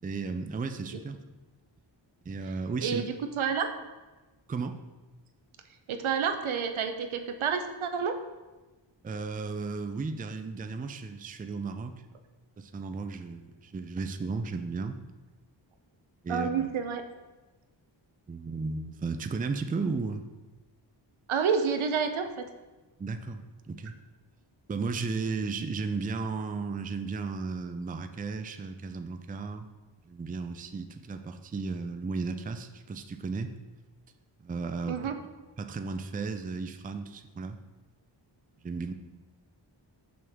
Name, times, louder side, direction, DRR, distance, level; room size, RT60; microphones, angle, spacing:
voice 1, 0.0-1.2 2.3-3.0 4.5-4.8 9.0-11.9 12.6-15.0 16.2-16.5 18.3-20.2 23.0-23.9 24.7-29.7 30.1-33.5 34.4-35.0 35.6-37.6 38.6-38.9, right 4 dB, 20° right, 8 dB, 0.4 m, -34 dB
voice 2, 2.8-3.7 5.9-8.2 16.3-17.0 21.3-22.5 34.9-35.1, right 6 dB, 85° right, 7 dB, 0.7 m, -29 dB
6.1 x 6.0 x 3.6 m, 1.2 s
wide cardioid pair, 90°, 47 cm